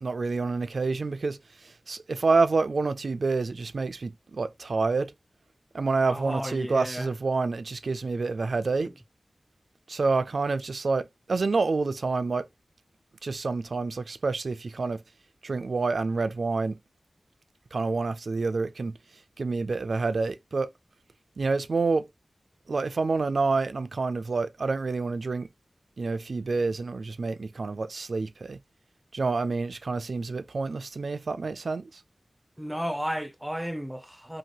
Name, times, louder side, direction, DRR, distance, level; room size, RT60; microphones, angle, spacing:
voice 1, 0.0-5.1 5.7-8.9 9.9-12.5 13.2-15.0 15.4-16.8 17.7-19.0 19.4-20.7 21.4-22.1 22.7-25.5 26.0-28.6 29.1-32.0, right 3 dB, 75° right, 0.3 m, -28 dB
voice 2, 6.1-7.1 8.8-8.9 32.6-34.4, equal, 5° right, 0.4 m, -33 dB
2.8 x 2.6 x 2.8 m
wide cardioid pair, 65°, 0 cm